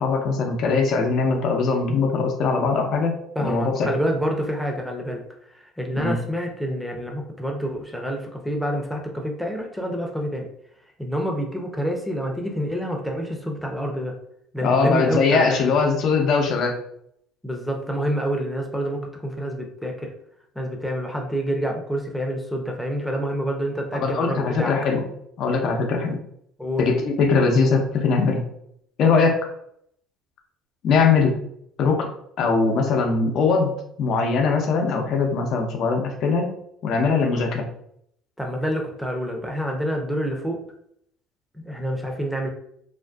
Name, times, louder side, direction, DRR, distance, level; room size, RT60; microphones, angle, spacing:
voice 1, 0.0-3.9 6.0-6.2 14.6-16.8 23.9-25.0 25.4-26.2 26.8-28.4 29.0-29.4 30.8-31.3 31.8-32.1 32.4-33.7 34.0-36.5 36.8-37.6, left 4 dB, 60° left, 2 dB, 0.6 m, -21 dB
voice 2, 3.4-5.2 5.6-10.5 11.0-14.1 14.5-15.7 17.4-20.1 20.6-24.7 26.6-26.8 38.4-40.6 41.5-42.5, equal, ahead, 1 dB, 0.7 m, -27 dB
2.5 x 2.4 x 2.3 m, 0.71 s
hypercardioid pair, 65°, 0 cm